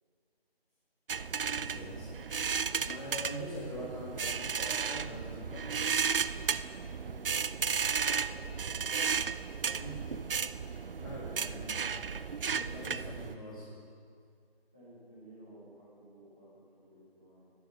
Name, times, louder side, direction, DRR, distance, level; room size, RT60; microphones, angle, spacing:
sound 1, 1.1-13.3, right 6 dB, 65° right, 0.4 m, -34 dB
voice 1, 1.5-2.6 2.8-5.7 9.8-10.1 11.0-11.9 12.5-13.7, equal, 35° left, -7 dB, 2.0 m, -43 dB
voice 2, 6.5-9.3 11.0-12.1 14.7-17.5, right 1 dB, 5° right, -10 dB, 0.8 m, -55 dB
11.0 x 10.5 x 6.7 m, 2.2 s
figure-of-eight pair, 165°, 31 cm